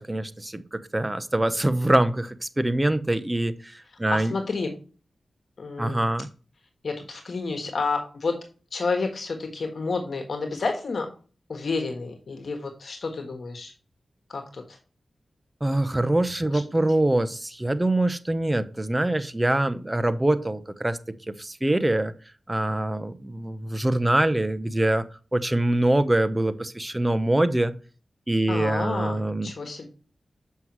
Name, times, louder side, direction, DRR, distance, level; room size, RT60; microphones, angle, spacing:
voice 1, 0.0-4.3 5.8-6.3 15.6-21.0 21.3-22.1 22.5-25.0 25.3-27.7 28.3-29.5, right 1 dB, 20° right, 11 dB, 0.8 m, -24 dB
voice 2, 4.1-4.7 5.6-6.1 6.8-8.3 8.7-11.1 11.5-13.7 14.3-14.8 16.5-16.6 28.5-29.9, left 4 dB, 70° left, 4 dB, 1.4 m, -30 dB
7.7 x 5.6 x 3.0 m, 0.37 s
cardioid pair, 50°, 0 cm